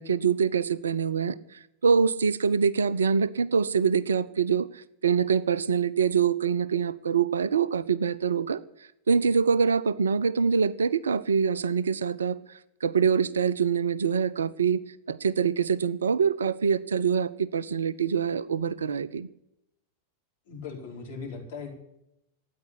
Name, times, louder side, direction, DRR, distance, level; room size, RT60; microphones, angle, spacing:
voice 1, 0.0-1.4 1.8-8.6 9.1-12.4 12.8-14.8 15.1-19.3, right 6 dB, 70° right, 19 dB, 0.6 m, -25 dB
voice 2, 20.5-21.7, left 5 dB, 55° left, 0 dB, 4.8 m, -38 dB
13.0 x 9.4 x 8.3 m, 0.83 s
figure-of-eight pair, 90°, 0 cm